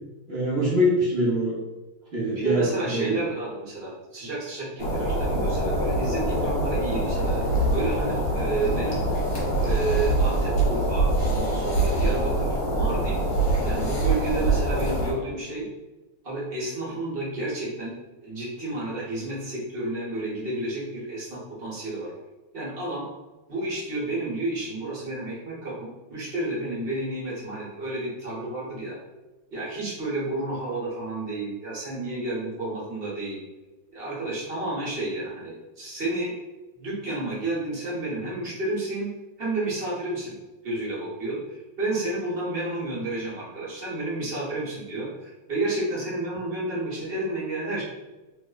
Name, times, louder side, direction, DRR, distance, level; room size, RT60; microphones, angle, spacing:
voice 1, 0.3-1.6 2.1-3.2, equal, 60° right, -7 dB, 0.6 m, -24 dB
voice 2, 2.3-9.0 9.6-13.2 13.6-15.6 16.2-17.9 18.2-22.1 22.5-23.0 23.5-29.0 29.5-33.4 33.9-36.3 36.8-39.1 39.4-40.4 40.6-47.8, right 2 dB, 35° right, -7 dB, 0.9 m, -31 dB
sound 1, 4.8-15.1, right 1 dB, 50° left, 1.4 m, -24 dB
3.3 x 2.1 x 3.9 m, 1.1 s
omnidirectional pair, 2.3 m